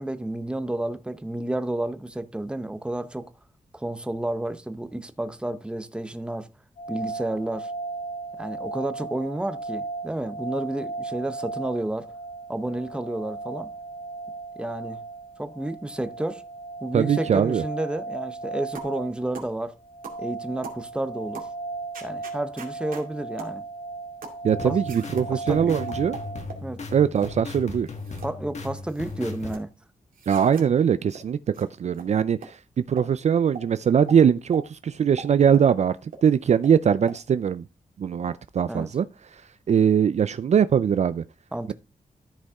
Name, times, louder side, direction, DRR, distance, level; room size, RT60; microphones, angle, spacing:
voice 1, 0.0-3.3 3.7-6.5 6.9-7.7 8.4-12.1 12.5-13.7 14.6-15.0 15.4-16.4 16.8-19.8 20.2-21.5 22.0-23.6 24.6-24.8 25.3-25.7 26.6-26.8 28.2-29.7 38.7-38.9 41.5-41.7, right 1 dB, 5° right, 0.7 m, -31 dB
sound 1, 6.8-26.4, right 3 dB, 80° left, 2.5 m, -36 dB
voice 2, 16.9-17.6 24.4-26.2 26.9-27.9 30.3-32.6 32.9-37.6 38.0-39.1 39.7-41.2, right 8 dB, 55° right, 0.4 m, -21 dB
sound 2, 18.8-19.0 19.3-19.5 20.0-20.2 20.6-20.8 21.3-21.5 21.9-23.1 23.4-23.6 24.2-24.4 24.9-25.3 25.9-26.7 27.2-27.4 27.9-28.3 28.6-29.6 30.1-30.7 31.1-31.2 31.5-31.7 31.9-32.1 32.4-32.5 33.0-33.1 33.6-33.7 34.1-34.2 34.5-34.6 35.2-35.7 36.1-36.2 36.6-36.8 37.1-37.2, right 5 dB, 90° right, 2.4 m, -41 dB
sound 3, 24.5-29.6, left 3 dB, 55° left, 1.5 m, -37 dB
13.5 x 5.3 x 3.6 m
wide cardioid pair, 155°, 14 cm